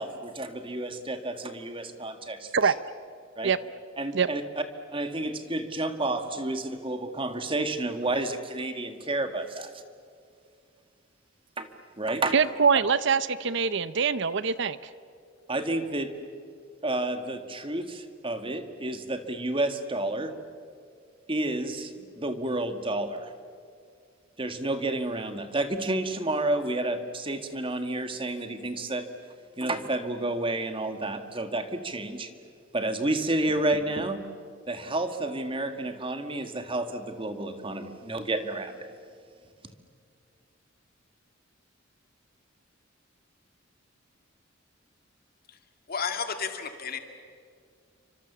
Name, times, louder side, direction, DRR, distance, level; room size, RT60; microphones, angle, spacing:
voice 1, 0.0-2.7 3.4-3.5 4.0-4.4 4.9-9.7 11.6-11.7 12.0-12.3 12.7-12.8 15.5-16.1 16.8-20.3 21.3-23.3 24.4-29.1 29.6-32.3 32.7-34.2 34.7-38.9, right 2 dB, 25° right, 7 dB, 1.7 m, -30 dB
voice 2, 12.3-14.8, right 6 dB, 60° right, 15 dB, 0.7 m, -23 dB
voice 3, 45.9-47.0, left 6 dB, 45° left, 6 dB, 2.2 m, -32 dB
29.5 x 25.5 x 7.2 m, 2.3 s
head